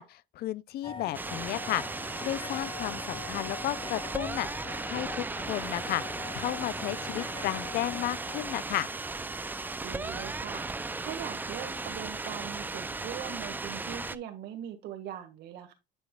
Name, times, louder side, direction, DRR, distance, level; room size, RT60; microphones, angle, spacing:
voice 1, 0.0-4.5 4.9-6.0 6.3-8.9, left 14 dB, 65° left, 0.4 m, -33 dB
sound 1, 0.8-9.3, left 5 dB, 30° left, 1.1 m, -43 dB
sound 2, 1.1-14.2, right 3 dB, 10° right, 0.3 m, -36 dB
voice 2, 9.8-10.7 11.0-15.7, right 9 dB, 80° right, 1.7 m, -41 dB
9.9 x 5.0 x 2.3 m
cardioid pair, 110°, 17 cm